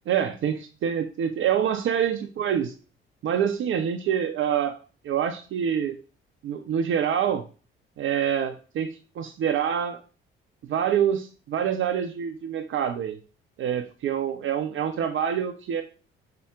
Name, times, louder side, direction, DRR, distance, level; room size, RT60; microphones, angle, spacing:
voice 1, 0.1-2.7 3.2-4.8 5.0-6.0 6.4-7.5 8.0-8.9 9.2-10.0 10.7-13.2 13.6-15.8, right 8 dB, 45° right, 5 dB, 0.5 m, -26 dB
5.5 x 2.1 x 3.6 m, 0.35 s
figure-of-eight pair, 45°, 29 cm